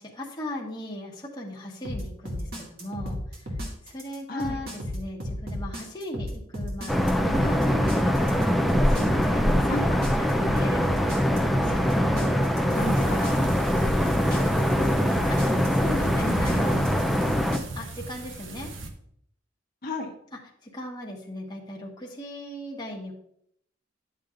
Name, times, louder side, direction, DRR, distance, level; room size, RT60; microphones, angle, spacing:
voice 1, 0.0-3.2 3.9-10.9 11.4-13.3 14.3-14.4 15.3-16.6 17.7-18.7 20.6-23.1, left 1 dB, 20° left, -3 dB, 1.3 m, -38 dB
sound 1, 1.8-17.6, left 1 dB, 50° right, 2.2 m, -33 dB
voice 2, 4.3-4.6 9.7-9.9 12.6-13.5 14.3-15.2 16.0-16.8 19.8-20.1, left 2 dB, 50° left, 1 dB, 1.2 m, -35 dB
sound 2, 6.9-17.6, equal, ahead, 0.5 m, -23 dB
sound 3, 12.7-18.9, right 2 dB, 85° right, 1.0 m, -38 dB
10.5 x 7.2 x 2.5 m, 0.70 s
head